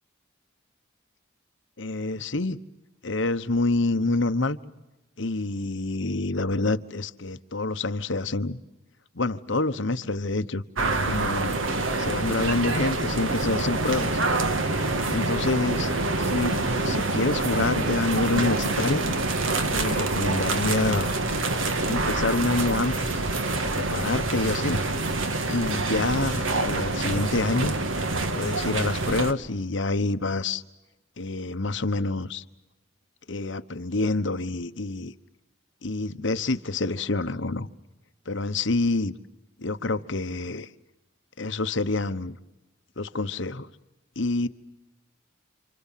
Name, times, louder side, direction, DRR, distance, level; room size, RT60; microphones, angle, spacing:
voice 1, 1.8-2.6 3.0-4.6 5.2-8.6 9.1-10.6 11.0-11.6 12.0-14.2 15.1-15.9 16.2-19.0 19.7-21.1 21.9-23.2 23.6-24.8 25.5-27.8 28.3-30.6 31.2-32.4 33.3-35.1 35.8-37.7 38.3-39.1 39.6-40.7 41.4-42.4 43.0-43.7 44.2-44.5, left 2 dB, 65° left, 1.1 m, -27 dB
sound 1, 10.8-29.3, right 2 dB, 75° right, 1.7 m, -26 dB
29.0 x 27.0 x 7.5 m
head